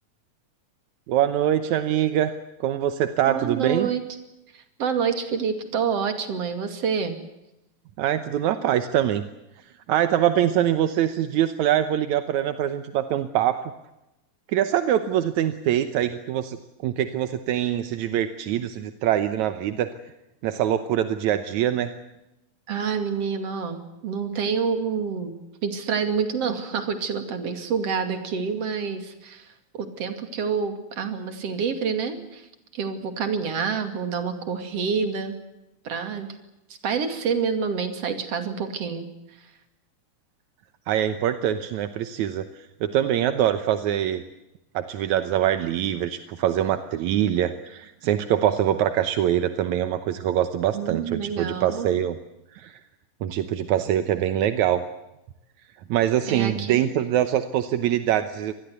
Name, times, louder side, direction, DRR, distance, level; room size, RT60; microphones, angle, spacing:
voice 1, 1.1-2.4 2.6-3.9 8.0-9.3 9.9-13.6 14.5-16.6 16.8-19.9 20.4-22.0 40.9-44.2 44.7-52.2 52.5-52.8 53.2-54.8 55.9-58.5, right 11 dB, 70° right, 10 dB, 1.9 m, -24 dB
voice 2, 3.3-4.0 4.5-7.2 22.7-25.3 25.6-32.5 32.7-35.4 35.8-36.3 36.8-39.1 50.7-51.9 56.3-56.8, right 6 dB, 45° right, 8 dB, 3.2 m, -27 dB
26.0 x 20.0 x 8.1 m, 0.94 s
omnidirectional pair, 4.2 m